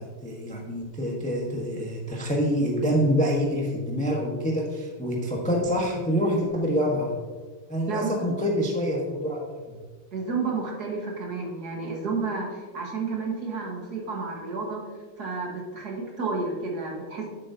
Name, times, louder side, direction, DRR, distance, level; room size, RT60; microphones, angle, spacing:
voice 1, 0.0-7.1 7.7-9.8, equal, 5° left, -1 dB, 0.7 m, -26 dB
voice 2, 10.1-14.8 15.2-17.3, right 4 dB, 50° right, -1 dB, 1.9 m, -31 dB
10.5 x 7.6 x 2.8 m, 1.4 s
omnidirectional pair, 2.4 m